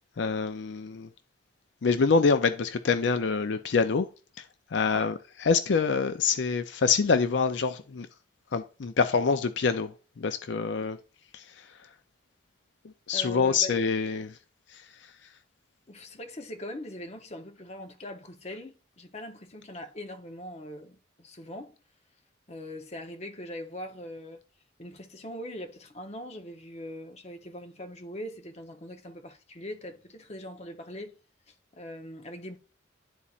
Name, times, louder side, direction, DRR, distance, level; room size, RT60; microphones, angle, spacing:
voice 1, 0.2-1.1 1.8-4.1 4.4-4.5 4.7-8.1 8.5-11.0 11.3-11.7 13.1-14.4 14.7-14.8, left 5 dB, 75° left, 0.5 m, -26 dB
voice 2, 13.1-13.8 15.9-21.8 22.5-24.4 24.8-31.2 31.5-32.6, left 1 dB, 35° left, 0.9 m, -41 dB
11.0 x 4.2 x 2.4 m
head